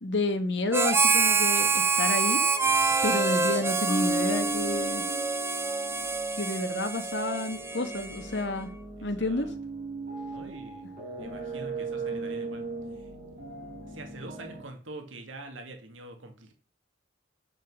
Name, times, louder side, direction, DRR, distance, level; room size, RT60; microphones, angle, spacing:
voice 1, 0.0-2.4 3.0-5.0 6.4-8.7 9.0-9.5, left 2 dB, 60° left, 1.4 m, -30 dB
Harmonica, 0.7-8.5, right 4 dB, 15° right, 0.7 m, -26 dB
sound 1, 0.9-14.6, right 3 dB, 40° right, 6.0 m, -40 dB
voice 2, 2.6-3.0 9.0-9.5 10.3-10.9 11.1-12.7 12.9-13.1 13.8-16.5, right 2 dB, 80° right, 1.8 m, -45 dB
Marimba xylophone, 3.9-5.9, equal, 25° left, 1.0 m, -33 dB
9.2 x 5.6 x 6.2 m
head